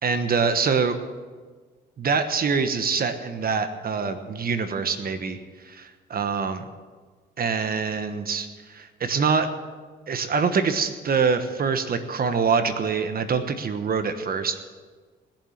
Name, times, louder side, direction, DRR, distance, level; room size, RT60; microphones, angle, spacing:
voice 1, 0.0-1.0 2.0-5.4 5.7-6.6 7.4-8.5 8.7-9.5 10.1-14.6, right 5 dB, 50° right, 9 dB, 1.2 m, -24 dB
20.5 x 7.4 x 7.3 m, 1.4 s
cardioid pair, 90°, 20 cm